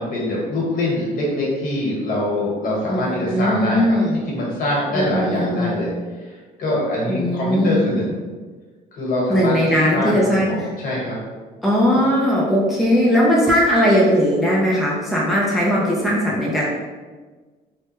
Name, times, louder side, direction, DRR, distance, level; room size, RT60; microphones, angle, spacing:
voice 1, 0.0-5.9 6.2-8.1 8.9-11.2 11.9-12.1, left 1 dB, 55° left, -5 dB, 1.2 m, -24 dB
voice 2, 2.9-4.2 4.9-5.8 7.1-7.8 9.3-10.7 11.6-16.6, equal, ahead, -5 dB, 0.5 m, -18 dB
3.2 x 2.2 x 3.0 m, 1.4 s
cardioid pair, 110°, 17 cm